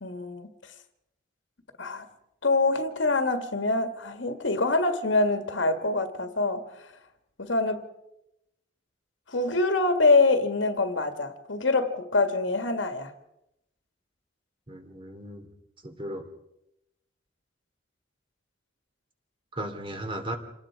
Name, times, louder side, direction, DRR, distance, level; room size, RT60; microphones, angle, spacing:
voice 1, 0.0-0.5 1.8-2.1 2.4-6.9 7.4-7.9 9.3-13.1, left 3 dB, 80° left, 7 dB, 2.0 m, -25 dB
voice 2, 14.7-15.5 15.8-16.2 19.5-20.4, right 1 dB, 30° right, 5 dB, 2.9 m, -36 dB
28.0 x 19.0 x 4.9 m, 0.85 s
head